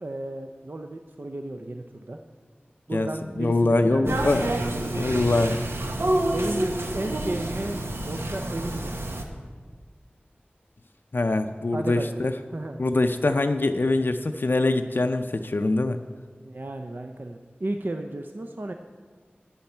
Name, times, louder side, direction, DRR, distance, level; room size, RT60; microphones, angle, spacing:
voice 1, 0.0-2.2 2.9-4.9 6.3-9.2 11.7-12.8 16.4-18.7, right 2 dB, 55° right, 5 dB, 0.6 m, -34 dB
voice 2, 3.4-4.5 4.9-5.6 11.1-12.3 12.8-16.0, left 2 dB, 60° left, 8 dB, 0.4 m, -23 dB
sound 1, 4.1-9.2, right 1 dB, 85° right, 1.0 m, -28 dB
11.5 x 9.6 x 4.4 m, 1.6 s
wide cardioid pair, 50°, 4 cm